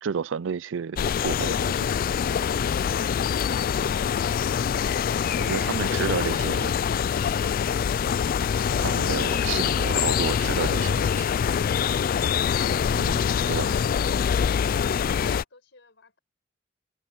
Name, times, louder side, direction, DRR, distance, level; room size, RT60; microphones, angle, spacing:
voice 1, 0.0-1.9 5.4-6.8 8.8-11.3 12.9-13.2 13.5-13.7, right 6 dB, 80° right, 0.4 m, -31 dB
sound 1, 1.0-15.4, left 7 dB, 50° left, 0.3 m, -24 dB
voice 2, 13.5-16.2, left 4 dB, 65° left, 5.7 m, -52 dB
head